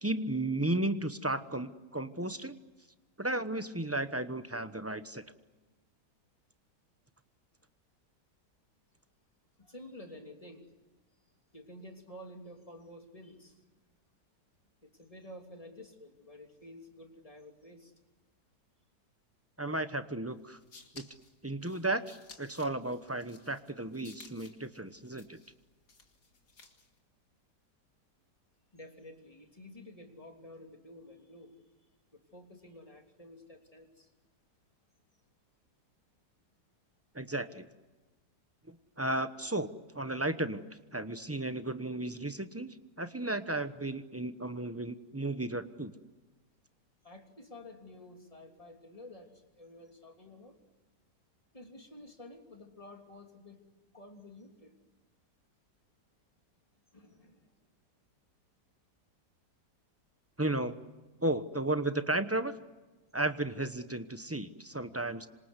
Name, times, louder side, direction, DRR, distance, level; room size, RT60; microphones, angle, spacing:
voice 1, 0.0-2.6 3.2-5.2 19.6-20.6 20.9-21.1 21.4-22.0 22.4-25.4 37.1-37.7 38.7-39.7 39.9-40.6 40.9-45.9 60.4-60.8 61.2-62.5 63.1-65.3, right 2 dB, 10° right, 10 dB, 0.7 m, -34 dB
voice 2, 9.6-10.7 11.5-13.6 14.8-17.9 28.7-31.5 32.1-34.1 47.0-50.6 51.5-53.6 53.9-54.8 56.9-57.5, left 1 dB, 20° left, 3 dB, 3.2 m, -51 dB
sound 1, 20.4-27.0, left 4 dB, 65° left, 3.0 m, -57 dB
27.0 x 26.5 x 8.2 m, 1.2 s
omnidirectional pair, 1.9 m